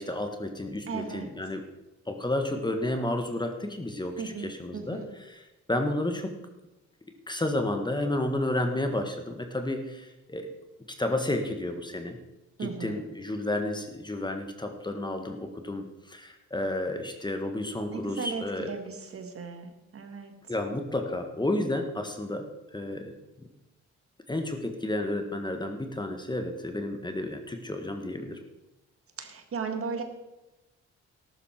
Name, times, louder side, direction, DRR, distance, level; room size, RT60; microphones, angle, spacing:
voice 1, 0.0-1.6 2.1-5.0 5.3-5.4 5.7-6.3 7.3-10.5 11.0-12.2 12.6-18.7 20.5-22.5 22.7-23.5 24.3-28.4, left 1 dB, 15° left, 5 dB, 1.7 m, -31 dB
voice 2, 0.9-1.3 4.2-5.1 12.6-13.0 17.9-20.3 29.2-30.0, right 5 dB, 45° right, 6 dB, 2.0 m, -36 dB
13.5 x 12.0 x 4.5 m, 1.0 s
cardioid pair, 90°, 30 cm